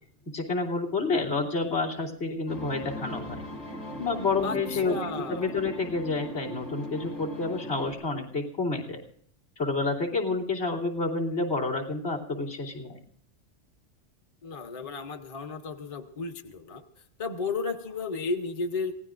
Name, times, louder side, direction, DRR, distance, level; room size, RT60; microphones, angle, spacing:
voice 1, 0.3-3.4 4.0-5.0 5.3-9.0 9.6-13.0, left 3 dB, 60° left, 2 dB, 3.2 m, -29 dB
sound 1, 2.5-7.9, right 1 dB, 75° left, 5.4 m, -39 dB
voice 2, 4.4-5.6 14.4-16.8 17.2-19.0, left 4 dB, 30° left, 5 dB, 0.8 m, -33 dB
26.0 x 17.0 x 2.5 m, 0.68 s
omnidirectional pair, 1.3 m